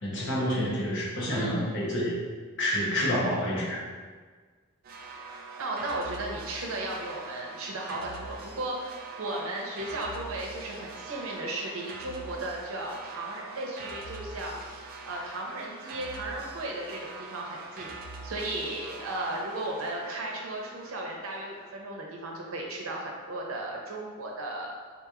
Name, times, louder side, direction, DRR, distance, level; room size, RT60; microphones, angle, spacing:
voice 1, 0.0-2.2 2.6-3.8, equal, 60° left, -5 dB, 0.9 m, -28 dB
voice 2, 1.3-2.2 5.6-14.6 15.1-17.9 18.2-24.8, right 2 dB, 90° right, -1 dB, 0.6 m, -35 dB
sound 1, 4.8-21.7, right 3 dB, 45° right, 0.3 m, -43 dB
3.9 x 2.9 x 2.4 m, 1.5 s
head